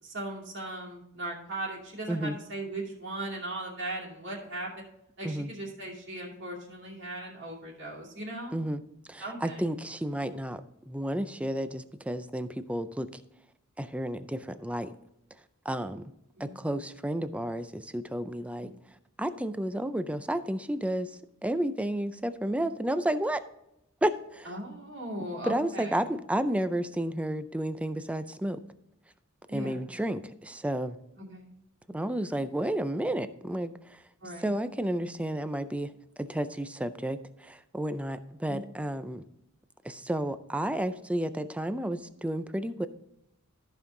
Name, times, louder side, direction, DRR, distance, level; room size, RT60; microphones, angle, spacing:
voice 1, 0.0-4.7 5.2-8.6 9.2-9.6 16.4-16.7 18.6-18.7 24.5-26.0 29.5-29.8 31.2-31.5 34.2-34.5 38.5-38.7, right 1 dB, 60° right, -3 dB, 2.4 m, -38 dB
voice 2, 9.1-13.2 13.8-14.9 15.7-16.0 16.4-18.7 19.2-23.4 24.0-24.5 25.4-28.6 29.5-31.0 31.9-34.0 34.4-35.9 36.2-39.2 39.8-42.9, right 1 dB, 5° right, 12 dB, 0.4 m, -31 dB
13.5 x 5.4 x 3.7 m, 0.83 s
head